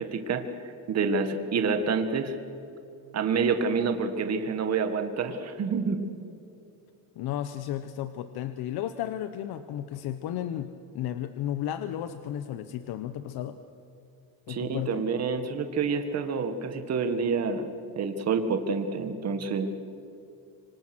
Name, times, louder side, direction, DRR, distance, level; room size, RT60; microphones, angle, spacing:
voice 1, 0.0-2.4 3.1-6.0 14.5-17.6 18.0-19.7, right 5 dB, 40° right, 7 dB, 1.9 m, -28 dB
voice 2, 7.2-13.6 14.5-15.1, left 11 dB, 75° left, 10 dB, 1.0 m, -33 dB
26.0 x 25.5 x 6.2 m, 2.6 s
cardioid pair, 150°, 38 cm